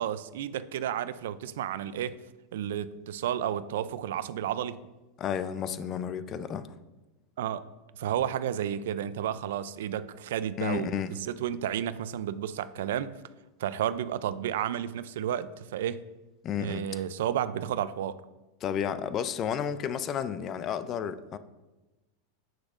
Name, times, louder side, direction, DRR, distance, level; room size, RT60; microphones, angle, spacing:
voice 1, 0.0-2.2 2.5-4.8 7.4-7.6 8.0-13.1 13.6-16.0 16.6-18.2, right 10 dB, 75° right, 0.3 m, -32 dB
voice 2, 5.2-6.7 10.6-11.1 16.4-16.9 18.6-21.4, left 8 dB, 35° left, 0.4 m, -32 dB
8.0 x 6.2 x 2.5 m
supercardioid pair, 130°, 0 cm